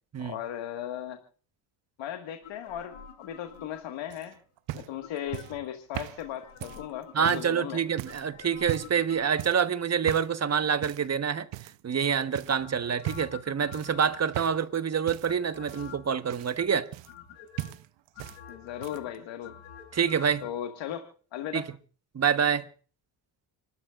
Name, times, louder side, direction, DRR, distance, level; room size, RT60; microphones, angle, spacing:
voice 1, 0.2-1.2 2.0-4.4 4.7-7.8 18.5-19.5 20.4-21.7, left 10 dB, 65° left, 1.8 m, -37 dB
sound 1, 2.4-4.3 5.0-5.7 6.2-7.6 8.0-9.7 12.5-14.7 15.3-16.2 16.6-17.7 18.1-20.5 20.8-20.9, left 8 dB, 80° left, 7.4 m, -48 dB
sound 2, 4.1-7.5 8.0-8.3 8.6-9.0 9.4-9.7 10.1-10.4 10.8-11.1 11.5-12.0 12.3-12.6 13.0-13.4 13.7-14.8 15.1-17.3 17.6-18.4 18.7-19.2 20.1-20.2, right 17 dB, 60° right, 0.8 m, -39 dB
voice 2, 7.1-11.5 11.8-16.9 19.9-20.5 21.5-21.6 22.1-22.7, right 7 dB, 30° right, 1.2 m, -27 dB
30.0 x 13.0 x 2.5 m
supercardioid pair, 80°, 49 cm